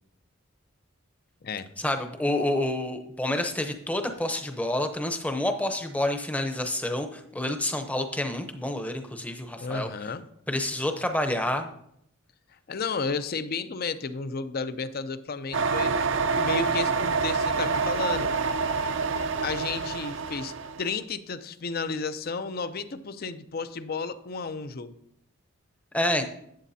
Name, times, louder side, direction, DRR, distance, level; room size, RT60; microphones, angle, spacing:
voice 1, 1.8-9.9 10.5-11.7 25.9-26.2, left 1 dB, 5° left, 6 dB, 0.7 m, -28 dB
voice 2, 9.6-10.2 12.7-15.9 16.3-18.3 19.4-20.5 20.8-24.9, left 4 dB, 45° left, 13 dB, 0.5 m, -32 dB
sound 1, 15.5-20.8, right 4 dB, 65° right, 0.6 m, -27 dB
11.5 x 8.1 x 2.7 m, 0.73 s
head